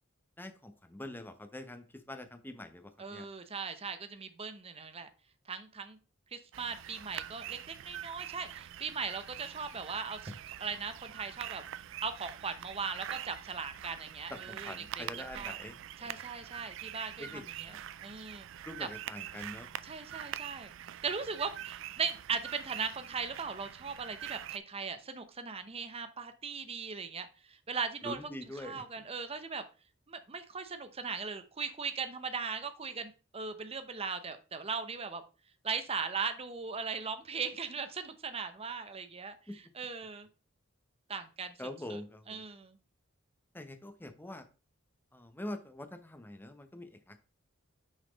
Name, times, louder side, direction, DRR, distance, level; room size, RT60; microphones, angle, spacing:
voice 1, 0.4-3.3 14.3-16.1 17.2-17.8 18.6-19.7 28.0-28.8 39.5-39.6 41.6-42.4 43.5-44.5 45.1-47.2, left 1 dB, 10° left, 8 dB, 0.7 m, -44 dB
voice 2, 3.0-5.1 5.5-6.0 6.3-11.6 12.0-15.0 15.3-15.6 16.0-17.7 18.0-18.5 18.8-18.9 19.8-20.7 21.0-28.2 28.6-29.6 30.1-35.2 35.6-40.3 41.1-41.5 41.9-42.0 42.3-42.8, right 5 dB, 30° right, 9 dB, 0.8 m, -39 dB
sound 1, 6.5-24.6, right 11 dB, 65° right, 0.4 m, -45 dB
6.3 x 4.1 x 5.1 m, 0.34 s
head